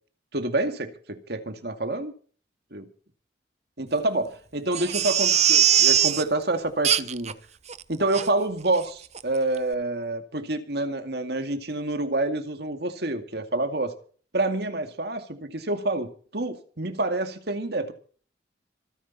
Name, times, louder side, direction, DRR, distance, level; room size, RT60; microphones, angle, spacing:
voice 1, 0.3-2.1 2.7-2.8 3.8-7.3 7.9-13.9 14.3-17.9, right 2 dB, 60° right, 2.2 m, -28 dB
Crying sobbing, 4.7-6.2 6.8-7.3 7.7-7.8 8.1-8.3 8.7-8.9 9.1-9.2, right 10 dB, 40° right, 0.8 m, -21 dB
26.0 x 10.5 x 4.2 m
head